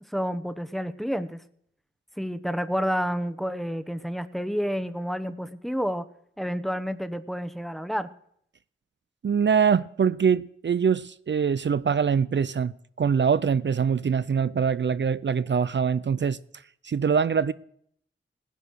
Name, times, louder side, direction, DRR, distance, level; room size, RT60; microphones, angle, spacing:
voice 1, 0.1-1.4 2.2-6.1 6.4-8.1, equal, ahead, 1.0 m, -29 dB
voice 2, 9.2-16.4 16.8-17.5, right 6 dB, 60° right, 0.5 m, -23 dB
17.5 x 10.5 x 6.4 m
wide cardioid pair, 55°, 21 cm